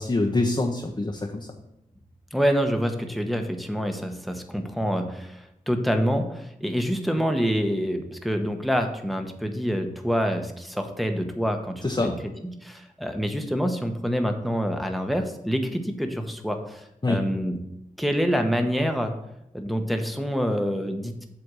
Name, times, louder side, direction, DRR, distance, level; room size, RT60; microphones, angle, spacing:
voice 1, 0.0-1.5 11.8-12.2 17.0-17.2, left 2 dB, 30° left, 1 dB, 0.8 m, -25 dB
voice 2, 2.3-12.1 12.6-16.8 17.1-17.6 18.0-19.1 19.5-21.3, equal, ahead, 5 dB, 1.0 m, -26 dB
7.8 x 3.5 x 6.1 m, 0.84 s
cardioid pair, 50°, 15 cm